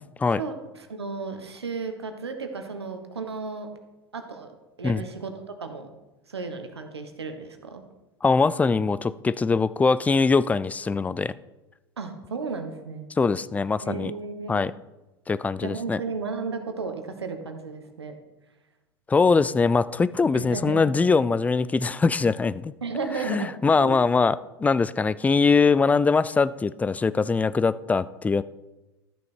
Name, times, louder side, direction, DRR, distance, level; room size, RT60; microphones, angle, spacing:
voice 1, 0.4-3.7 4.1-4.5 4.8-5.9 6.3-7.8 12.0-13.1 13.8-14.6 15.6-18.1 20.3-20.9 21.2-21.3 22.8-23.5 23.8-24.0, right 4 dB, 85° right, 6 dB, 1.3 m, -34 dB
voice 2, 8.2-11.3 13.2-14.1 14.5-14.7 15.3-16.0 19.1-22.7 23.3-28.4, left 4 dB, 10° left, 17 dB, 0.3 m, -22 dB
13.5 x 6.3 x 4.5 m, 1.1 s
figure-of-eight pair, 85°, 13 cm